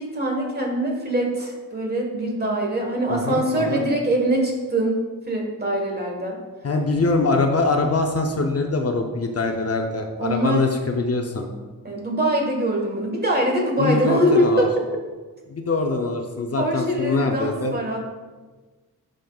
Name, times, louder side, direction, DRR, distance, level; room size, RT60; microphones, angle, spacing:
voice 1, 0.0-6.4 10.2-10.6 11.8-14.8 16.6-18.1, right 1 dB, 30° right, 0 dB, 1.4 m, -23 dB
voice 2, 3.1-3.8 6.6-11.5 13.8-14.7 15.5-17.7, left 3 dB, 45° left, 3 dB, 0.6 m, -23 dB
9.3 x 5.2 x 2.3 m, 1.3 s
wide cardioid pair, 105°, 34 cm